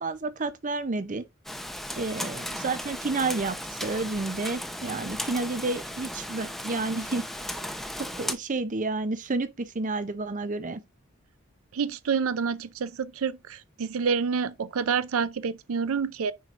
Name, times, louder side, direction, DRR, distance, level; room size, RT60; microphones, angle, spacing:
voice 1, 0.0-1.2 2.0-7.2 8.1-10.8, right 3 dB, 40° right, 0.6 m, -30 dB
Rain, 1.4-8.3, equal, ahead, 0.7 m, -36 dB
voice 2, 11.7-16.3, right 6 dB, 90° right, 0.5 m, -28 dB
9.2 x 4.5 x 2.5 m
head